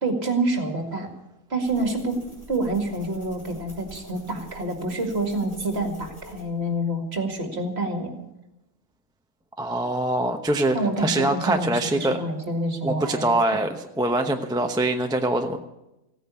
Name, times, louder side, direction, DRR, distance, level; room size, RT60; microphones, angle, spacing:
voice 1, 0.0-1.1 1.5-2.2 2.5-8.2 10.7-13.3, right 2 dB, 45° right, 3 dB, 2.4 m, -27 dB
sound 1, 1.6-6.8, equal, 25° left, 4.5 m, -46 dB
voice 2, 9.6-12.2 12.8-15.6, right 1 dB, 5° right, 4 dB, 0.7 m, -24 dB
16.5 x 9.3 x 8.4 m, 0.94 s
omnidirectional pair, 1.5 m